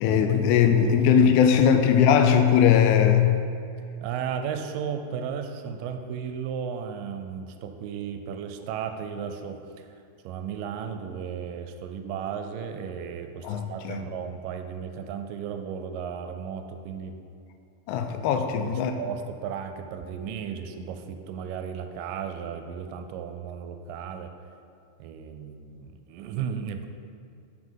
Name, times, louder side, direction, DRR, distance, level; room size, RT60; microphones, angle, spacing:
voice 1, 0.0-3.4 13.4-14.0 17.9-18.9, left 8 dB, 80° left, 6 dB, 1.7 m, -20 dB
voice 2, 0.6-1.0 4.0-9.6 10.2-17.2 18.3-24.3 25.0-26.9, right 7 dB, 85° right, 7 dB, 2.1 m, -35 dB
5.8 x 5.1 x 5.5 m, 2.4 s
omnidirectional pair, 3.9 m